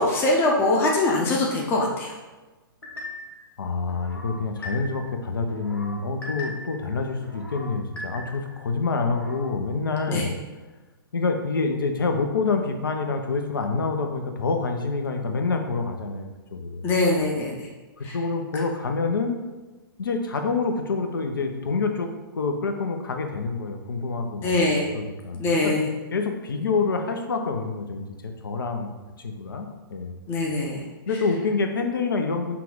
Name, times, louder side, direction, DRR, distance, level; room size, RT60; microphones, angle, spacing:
voice 1, 0.0-2.1 10.1-10.3 16.8-17.7 18.0-18.1 24.4-24.9 25.3-25.9 30.3-30.8, left 2 dB, 20° left, -1 dB, 0.7 m, -23 dB
sound 1, 2.8-3.4 3.9-5.1 5.5-6.8 7.2-8.6 9.0-9.5, left 1 dB, 85° left, 1.3 m, -39 dB
voice 2, 3.6-10.3 11.1-16.9 18.0-19.4 20.0-22.1 22.3-25.8 26.1-30.2 31.1-32.6, left 4 dB, 65° left, 5 dB, 0.7 m, -27 dB
5.8 x 2.4 x 3.7 m, 1.2 s
figure-of-eight pair, 115°, 12 cm